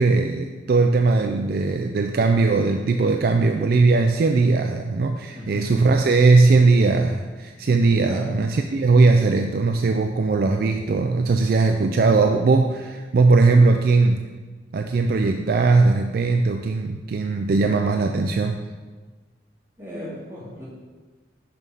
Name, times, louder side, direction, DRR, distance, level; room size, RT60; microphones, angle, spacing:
voice 1, 0.0-14.3 14.7-18.6, right 3 dB, 50° right, 5 dB, 0.3 m, -19 dB
voice 2, 5.3-5.8 8.0-8.4 19.8-20.7, left 1 dB, 15° right, -9 dB, 2.2 m, -35 dB
5.5 x 4.7 x 5.4 m, 1.4 s
head